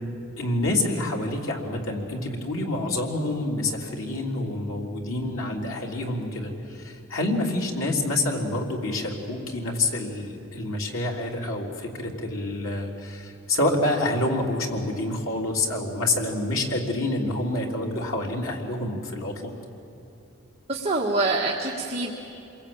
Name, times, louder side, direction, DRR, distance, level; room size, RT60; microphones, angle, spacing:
voice 1, 0.4-19.5, left 2 dB, 85° left, 0 dB, 3.6 m, -27 dB
voice 2, 20.7-22.1, right 2 dB, 30° right, -2 dB, 1.8 m, -25 dB
27.0 x 22.5 x 8.9 m, 3.0 s
head